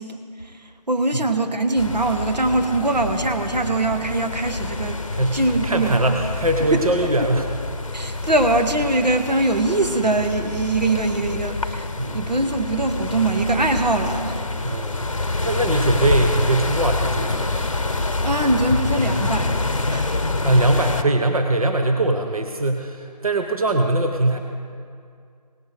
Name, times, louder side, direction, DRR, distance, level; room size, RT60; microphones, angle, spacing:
voice 1, 0.0-5.0 5.3-6.0 6.7-6.8 7.9-14.5 18.2-20.2, right 2 dB, 85° right, 6 dB, 1.3 m, -22 dB
sound 1, 1.8-21.0, left 2 dB, 50° left, 0.8 m, -26 dB
voice 2, 5.1-7.5 12.0-12.3 14.6-17.5 20.4-24.4, right 2 dB, 60° right, 4 dB, 0.9 m, -21 dB
18.0 x 9.1 x 4.9 m, 2.3 s
figure-of-eight pair, 170°, 21 cm